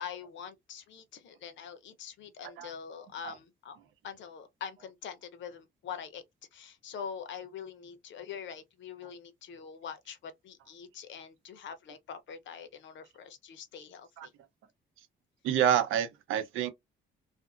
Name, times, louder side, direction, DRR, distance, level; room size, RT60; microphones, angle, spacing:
voice 1, 0.0-3.8 4.0-6.2 6.5-14.3, left 7 dB, 70° left, 0.7 m, -44 dB
voice 2, 15.4-16.7, right 9 dB, 85° right, 0.6 m, -27 dB
2.5 x 2.5 x 2.4 m
cardioid pair, 90°, 20 cm